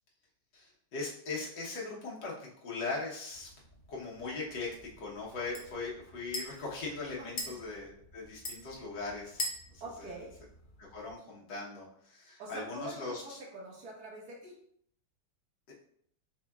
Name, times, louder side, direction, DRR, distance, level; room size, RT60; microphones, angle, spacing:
voice 1, 0.5-3.5 3.9-10.1 10.8-13.4 15.7-15.8, left 3 dB, 75° left, -5 dB, 1.7 m, -40 dB
sound 1, 3.3-11.1, left 1 dB, 50° left, 0.6 m, -45 dB
voice 2, 7.2-7.5 9.8-10.3 12.4-14.5, right 2 dB, 60° right, -2 dB, 1.6 m, -45 dB
4.9 x 3.6 x 2.3 m, 0.66 s
omnidirectional pair, 1.9 m